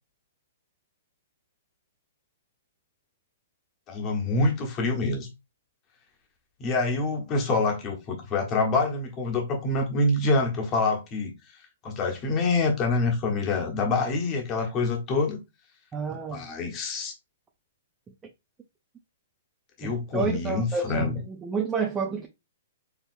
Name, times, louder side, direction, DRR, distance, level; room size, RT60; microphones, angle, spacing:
voice 1, 3.9-5.3 6.6-11.3 11.8-15.4 16.3-17.1 19.8-21.2, left 3 dB, 25° left, 1.4 m, -26 dB
voice 2, 15.9-16.4 19.8-22.3, right 5 dB, 15° right, 0.5 m, -30 dB
4.6 x 3.3 x 2.6 m
hypercardioid pair, 145°, 0 cm